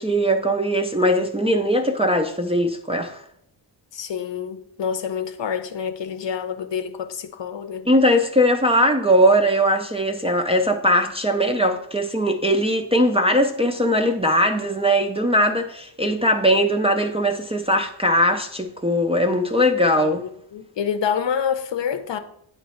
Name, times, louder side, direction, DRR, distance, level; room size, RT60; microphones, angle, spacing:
voice 1, 0.0-3.2 7.9-20.2, equal, 15° right, 0.3 m, -20 dB
voice 2, 3.9-7.9 19.8-22.2, left 7 dB, 70° left, 0.7 m, -27 dB
8.8 x 3.0 x 4.3 m
wide cardioid pair, 145°, 45 cm